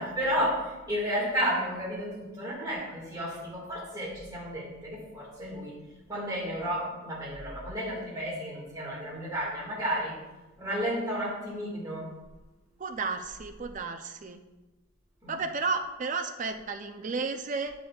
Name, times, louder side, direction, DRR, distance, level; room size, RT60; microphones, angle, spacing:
voice 1, 0.0-5.8 6.1-10.2 10.6-12.1 15.2-15.4, equal, 15° right, -5 dB, 1.8 m, -32 dB
voice 2, 12.8-14.4 15.3-17.7, right 4 dB, 35° right, 6 dB, 0.4 m, -33 dB
8.8 x 5.2 x 2.3 m, 1.1 s
head